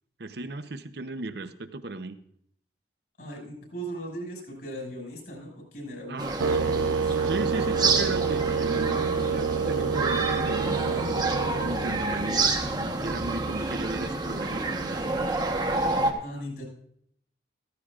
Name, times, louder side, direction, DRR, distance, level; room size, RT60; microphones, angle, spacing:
voice 1, 0.2-2.2 6.1-6.4 7.2-11.4 11.6-15.3, right 2 dB, 60° right, 10 dB, 0.7 m, -35 dB
voice 2, 3.2-7.2 16.2-16.7, right 1 dB, 55° left, 1 dB, 5.6 m, -39 dB
sound 1, 6.2-16.1, right 3 dB, 20° right, 1.1 m, -28 dB
sound 2, 6.4-12.5, right 6 dB, 85° right, 0.3 m, -28 dB
15.0 x 14.5 x 2.4 m, 0.66 s
head